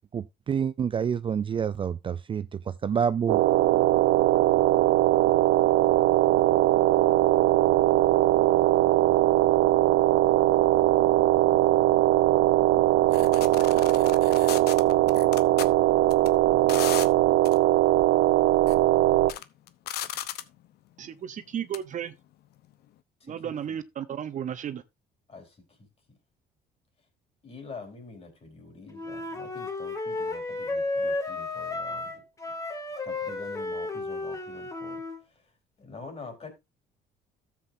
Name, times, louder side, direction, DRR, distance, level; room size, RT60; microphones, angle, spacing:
voice 1, 0.1-2.4 2.8-3.4, right 7 dB, 30° right, 0.4 m, -27 dB
sound 1, 3.3-19.3, right 15 dB, 85° right, 0.6 m, -21 dB
sound 2, 13.1-15.7 16.1-16.3 16.7-17.1 17.5-17.6 18.5-18.8 19.2-20.6 21.7-21.8, left 12 dB, 70° left, 0.9 m, -35 dB
voice 2, 21.0-22.1 23.3-24.8, right 9 dB, 45° right, 0.8 m, -34 dB
voice 3, 23.2-23.8 25.3-26.2 27.4-32.2 33.0-35.5 35.8-36.5, left 3 dB, 35° left, 4.2 m, -46 dB
Wind instrument woodwind instrument, 28.9-35.2, left 2 dB, 20° left, 2.0 m, -33 dB
13.5 x 7.6 x 2.6 m
cardioid pair, 110°, 17 cm